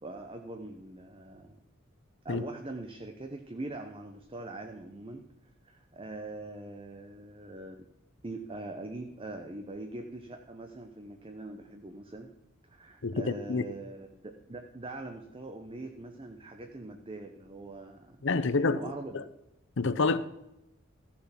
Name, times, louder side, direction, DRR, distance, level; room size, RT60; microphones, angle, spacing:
voice 1, 0.0-1.6 2.2-5.3 5.6-7.9 8.2-12.3 12.6-19.3, right 2 dB, 25° right, 0.8 m, -42 dB
voice 2, 13.0-13.6 18.2-18.8 19.1-19.2 19.8-20.2, left 3 dB, 60° left, 0.7 m, -27 dB
14.5 x 7.1 x 5.8 m
head